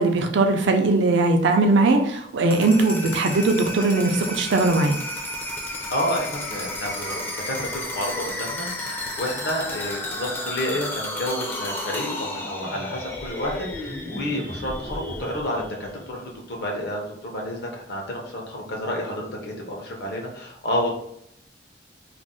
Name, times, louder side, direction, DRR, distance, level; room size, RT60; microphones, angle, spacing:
voice 1, 0.0-5.0, right 2 dB, 70° right, 4 dB, 0.5 m, -20 dB
sound 1, 2.4-16.2, left 1 dB, 10° left, 0.4 m, -32 dB
voice 2, 5.9-20.9, left 1 dB, 60° left, 0 dB, 0.7 m, -30 dB
2.5 x 2.0 x 3.7 m, 0.73 s
head